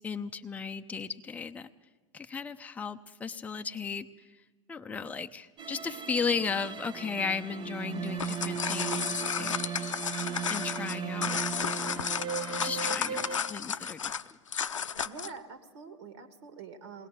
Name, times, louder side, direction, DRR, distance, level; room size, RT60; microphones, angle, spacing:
voice 1, 0.0-1.7 2.1-4.1 4.7-9.5 10.2-12.1 12.6-14.1, left 5 dB, 10° left, 6 dB, 0.7 m, -35 dB
sound 1, 5.6-13.4, right 7 dB, 30° right, 1.0 m, -37 dB
sound 2, 8.0-15.4, left 7 dB, 80° left, 0.6 m, -33 dB
voice 2, 9.2-9.6 15.0-17.1, right 5 dB, 60° right, 10 dB, 2.0 m, -46 dB
21.5 x 18.5 x 6.8 m, 1.3 s
figure-of-eight pair, 90°, 16 cm